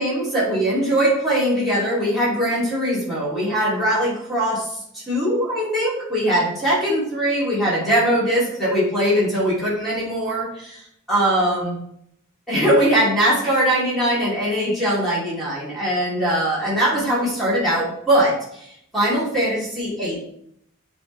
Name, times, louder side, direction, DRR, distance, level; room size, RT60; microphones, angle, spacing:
voice 1, 0.0-11.8 12.5-20.2, right 1 dB, ahead, -11 dB, 2.3 m, -21 dB
7.9 x 3.5 x 3.9 m, 0.73 s
head